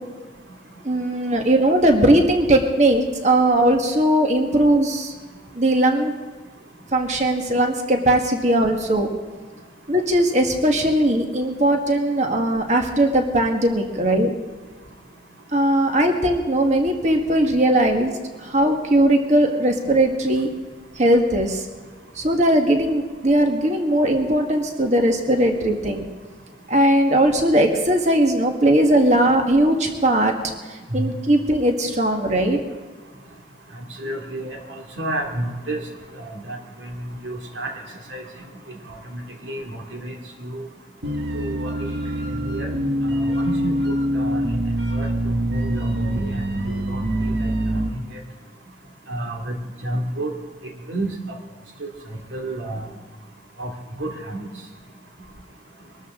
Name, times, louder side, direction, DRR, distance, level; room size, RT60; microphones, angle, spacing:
voice 1, 0.8-5.1 5.5-6.1 6.9-9.1 9.9-14.3 15.5-20.5 20.9-21.6 22.1-26.0 26.7-30.4 30.7-32.6, right 1 dB, 40° right, 4 dB, 1.6 m, -19 dB
voice 2, 34.0-35.8 36.2-37.7 38.1-38.2 38.7-40.7 41.3-41.9 42.4-42.7 43.1-43.8 44.1-44.6 44.9-48.2 49.1-50.3 50.9-51.4 51.8-52.8 53.6-53.7 54.0-54.5, right 1 dB, 80° right, 2 dB, 2.4 m, -31 dB
sound 1, 41.0-47.9, right 1 dB, 65° right, 1.4 m, -24 dB
23.0 x 13.0 x 3.8 m, 1.4 s
head